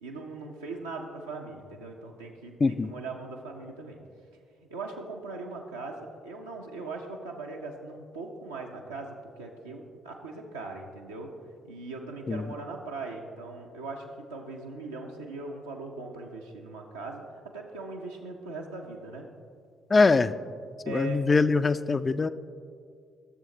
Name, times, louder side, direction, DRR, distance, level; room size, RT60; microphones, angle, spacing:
voice 1, 0.0-4.0 4.7-11.3 11.6-14.0 14.3-17.2 17.5-19.3 20.8-21.2, right 3 dB, 85° right, -2 dB, 0.6 m, -40 dB
voice 2, 2.6-2.9 12.3-12.5 19.9-20.3 20.9-22.3, left 4 dB, 35° left, 13 dB, 0.3 m, -23 dB
13.5 x 6.9 x 2.7 m, 2.3 s
figure-of-eight pair, 45°, 0 cm